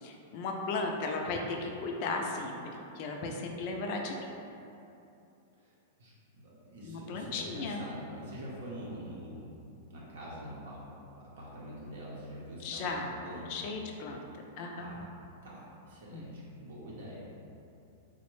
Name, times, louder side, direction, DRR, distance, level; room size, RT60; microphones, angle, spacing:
voice 1, 0.0-2.5 3.0-4.3 6.8-7.8 12.6-13.1 13.5-14.2 14.6-14.9 16.1-16.3, left 3 dB, 40° left, 1 dB, 0.3 m, -35 dB
voice 2, 6.0-9.6 9.9-13.5 14.8-15.0 15.4-17.2, equal, 75° right, -6 dB, 0.6 m, -45 dB
3.4 x 2.1 x 3.1 m, 2.7 s
supercardioid pair, 160°, 0 cm